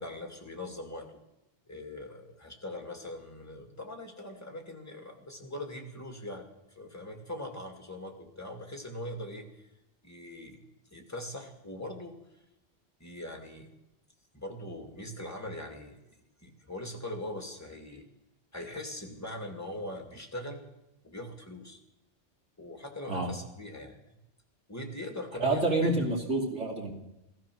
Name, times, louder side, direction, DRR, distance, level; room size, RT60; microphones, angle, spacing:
voice 1, 0.0-1.1 1.7-9.5 10.0-10.6 10.9-12.2 13.0-13.7 14.3-18.1 18.5-20.6 21.0-21.8 22.6-24.2 24.7-26.1, left 1 dB, 15° left, 2 dB, 2.3 m, -41 dB
voice 2, 25.4-26.9, right 2 dB, 85° right, 0 dB, 2.9 m, -28 dB
15.5 x 14.5 x 6.2 m, 0.89 s
omnidirectional pair, 1.2 m